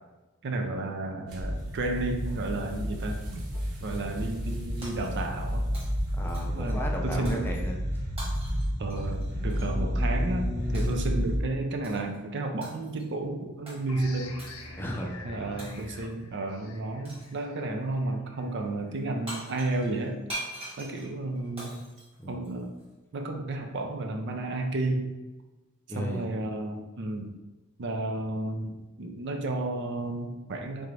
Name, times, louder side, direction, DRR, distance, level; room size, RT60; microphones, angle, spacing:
voice 1, 0.4-3.4 3.8-5.6 6.5-7.4 8.8-14.4 15.2-20.2 20.8-21.8 22.3-22.7 23.1-25.1 25.9-27.4 27.8-30.9, right 2 dB, 50° right, 4 dB, 0.4 m, -32 dB
sound 1, 1.3-11.4, equal, 85° right, 1.0 m, -30 dB
Shatter, 4.8-5.5 5.7-6.7 7.3-7.5 8.2-9.8 10.7-11.1 11.8-12.2 12.6-13.1 13.7-13.8 14.4-14.7 15.6-16.1 17.0-17.4 19.0-19.1 19.3-22.8, right 1 dB, 25° right, 1.4 m, -43 dB
voice 2, 6.2-7.8 14.8-15.2 22.2-22.5 25.9-26.2, equal, 10° left, 0 dB, 0.5 m, -34 dB
sound 2, 13.9-19.2, left 2 dB, 70° left, 0.7 m, -45 dB
3.8 x 3.5 x 3.2 m, 1.1 s
head